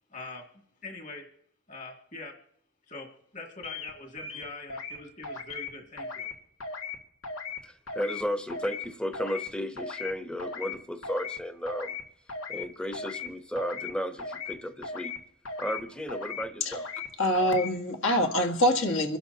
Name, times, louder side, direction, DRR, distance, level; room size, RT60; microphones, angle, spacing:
voice 1, 0.1-0.4 0.8-1.3 1.7-2.3 2.9-3.1 3.3-6.3, left 3 dB, 35° left, 1 dB, 2.2 m, -43 dB
sound 1, 3.6-3.9 4.2-5.0 5.2-5.7 6.0-6.3 6.6-7.0 7.2-7.6 7.9-8.2 8.5-8.9 9.1-9.5 9.8-10.1 10.4-10.8 11.0-11.4 11.7-12.0 12.3-12.7 12.9-13.3 13.6-13.9 14.2-14.5 14.8-15.2 15.5-15.8 16.1-16.4 16.7-17.1 17.4-17.7, left 4 dB, 85° left, 2.2 m, -37 dB
voice 2, 7.6-12.0 12.5-15.1 15.6-16.9, equal, 5° left, 8 dB, 0.9 m, -34 dB
voice 3, 17.2-19.2, left 1 dB, 65° left, 2 dB, 1.8 m, -25 dB
27.0 x 12.0 x 2.8 m, 0.65 s
head